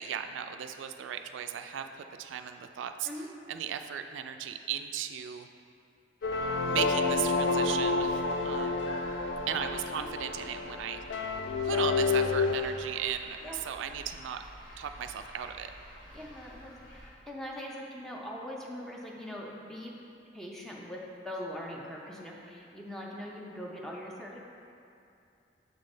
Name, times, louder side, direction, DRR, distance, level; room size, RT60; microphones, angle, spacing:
voice 1, 0.0-3.1 3.5-5.5 6.6-9.0 9.5-11.0 11.6-14.4 14.8-15.7, right 9 dB, 90° right, 8 dB, 0.3 m, -36 dB
sound 1, 6.2-12.6, left 4 dB, 75° left, 0.4 m, -29 dB
sound 2, 6.2-17.1, equal, 50° left, 1.2 m, -49 dB
voice 2, 16.1-19.9 20.3-24.4, equal, ahead, -3 dB, 0.5 m, -42 dB
7.0 x 3.8 x 3.8 m, 2.6 s
head